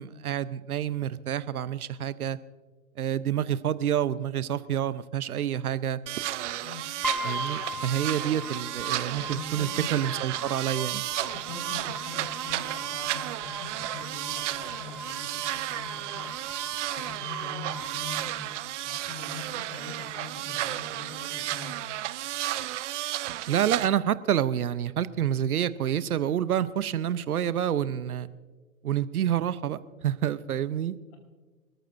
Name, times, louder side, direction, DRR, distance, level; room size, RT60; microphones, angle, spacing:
voice 1, 0.0-2.4 3.0-6.0 7.2-11.0 23.5-28.3 28.8-31.0, right 10 dB, 85° right, 15 dB, 0.8 m, -28 dB
sound 1, 6.1-23.9, right 14 dB, 55° right, 0.7 m, -33 dB
sound 2, 7.0-19.0, equal, ahead, 0.4 m, -40 dB
voice 2, 9.1-9.9 11.3-16.3 16.6-18.5 18.9-21.7, left 4 dB, 35° left, 1 dB, 4.4 m, -43 dB
26.0 x 14.0 x 2.6 m, 1.3 s
hypercardioid pair, 130°, 43 cm